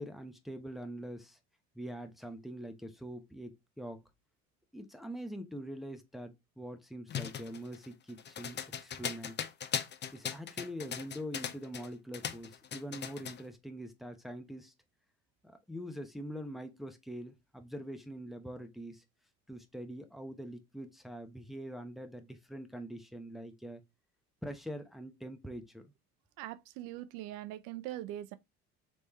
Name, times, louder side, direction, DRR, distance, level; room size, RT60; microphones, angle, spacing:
voice 1, 0.0-1.4 1.7-4.0 4.7-9.4 10.1-14.7 15.4-19.0 19.5-23.8 24.4-25.9, equal, ahead, 0.9 m, -44 dB
sound 1, 7.1-11.9 12.1-13.4, left 8 dB, 35° left, 0.6 m, -38 dB
voice 2, 26.4-28.4, right 13 dB, 75° right, 0.6 m, -42 dB
3.4 x 3.3 x 4.2 m
supercardioid pair, 75°, 32 cm